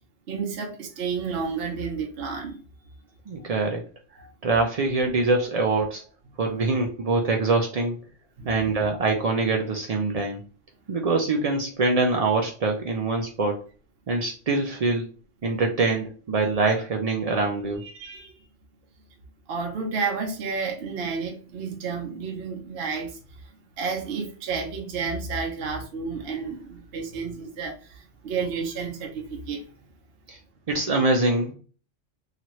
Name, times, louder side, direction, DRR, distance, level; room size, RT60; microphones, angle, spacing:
voice 1, 0.3-2.6 3.4-3.5 4.2-4.3 8.4-8.7 17.8-18.4 19.5-29.7, right 5 dB, 60° right, 0.8 m, -31 dB
voice 2, 3.3-3.8 4.4-6.0 6.4-8.0 8.5-10.4 10.9-13.6 14.1-15.1 15.4-17.8 30.3-30.4 30.7-31.5, right 3 dB, 75° right, 0.3 m, -24 dB
2.8 x 2.5 x 2.9 m
omnidirectional pair, 1.2 m